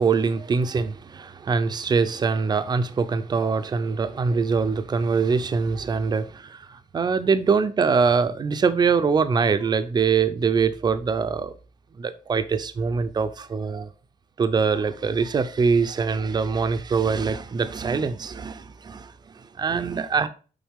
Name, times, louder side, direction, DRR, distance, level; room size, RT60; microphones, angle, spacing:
voice 1, 0.0-11.5 12.0-13.9 14.4-20.3, right 5 dB, 30° right, 0.6 m, -23 dB
7.2 x 5.5 x 3.6 m
wide cardioid pair, 175°, 15 cm